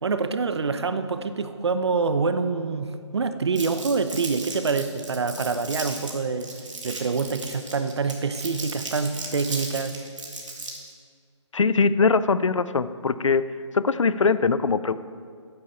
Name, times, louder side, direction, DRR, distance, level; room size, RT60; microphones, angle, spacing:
voice 1, 0.0-6.5 6.8-10.0, right 4 dB, 60° right, 10 dB, 0.8 m, -26 dB
Crumpling crinkling, 3.5-10.9, right 3 dB, 75° right, 2.7 m, -36 dB
voice 2, 11.5-13.5 13.7-14.9, left 4 dB, 90° left, 14 dB, 0.6 m, -21 dB
14.0 x 9.9 x 4.4 m, 2.1 s
hypercardioid pair, 165°, 16 cm